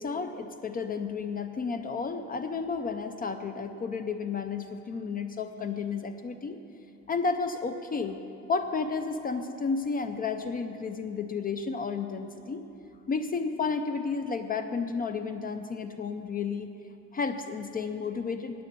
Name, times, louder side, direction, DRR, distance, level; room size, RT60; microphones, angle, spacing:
voice 1, 0.0-6.6 7.1-8.2 8.5-12.6 13.1-16.7 17.1-18.6, left 5 dB, 30° left, 7 dB, 0.4 m, -32 dB
9.4 x 9.3 x 8.6 m, 3.0 s
cardioid pair, 170°, 31 cm